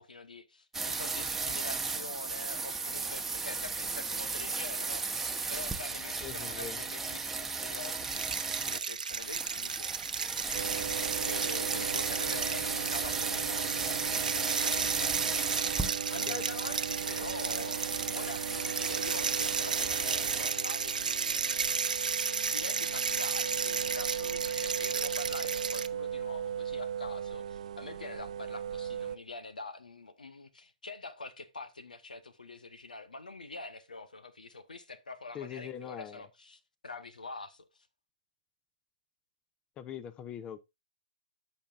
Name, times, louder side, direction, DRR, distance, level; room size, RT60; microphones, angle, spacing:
voice 1, 0.0-5.2 5.5-9.9 11.2-15.2 16.1-21.6 22.2-37.9, left 3 dB, 90° left, 1.2 m, -45 dB
sound 1, 0.7-8.8 9.1-20.5, right 4 dB, 5° right, 1.0 m, -35 dB
voice 2, 6.2-6.8 16.3-16.4 35.3-36.3 39.8-40.6, left 8 dB, 25° left, 0.7 m, -41 dB
sound 2, 7.8-25.9, right 5 dB, 85° right, 0.8 m, -34 dB
sound 3, 10.5-29.2, right 9 dB, 60° right, 0.5 m, -38 dB
14.0 x 5.9 x 2.5 m
hypercardioid pair, 125°, 4 cm